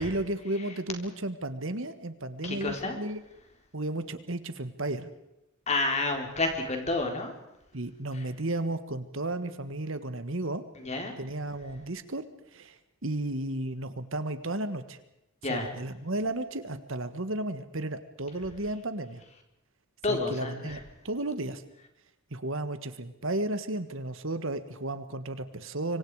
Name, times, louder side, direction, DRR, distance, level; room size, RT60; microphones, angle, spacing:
voice 1, 0.0-3.2 3.7-5.1 7.7-10.6 11.2-12.2 12.5-15.0 15.5-19.2 20.1-20.8 21.0-21.6 22.3-26.0, right 2 dB, 65° right, 11 dB, 1.7 m, -33 dB
voice 2, 2.4-3.0 5.7-7.3 10.8-11.1 15.4-15.7 20.0-20.8, left 2 dB, 30° left, 4 dB, 4.0 m, -30 dB
26.5 x 24.5 x 4.9 m, 0.88 s
head